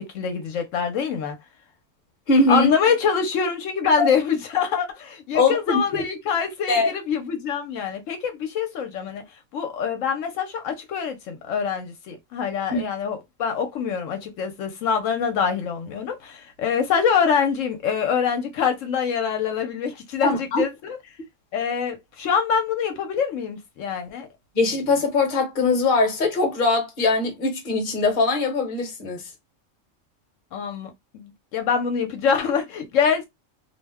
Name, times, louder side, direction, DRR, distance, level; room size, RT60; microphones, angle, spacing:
voice 1, 0.0-1.4 2.5-9.2 9.5-21.0 21.5-24.3 30.5-33.2, left 6 dB, 75° left, 1.0 m, -25 dB
voice 2, 2.3-2.7 4.0-4.1 5.3-6.1 6.7-6.9 12.7-12.8 20.2-20.6 24.5-29.2, left 3 dB, 45° left, 0.9 m, -21 dB
2.5 x 2.1 x 3.4 m
omnidirectional pair, 1.3 m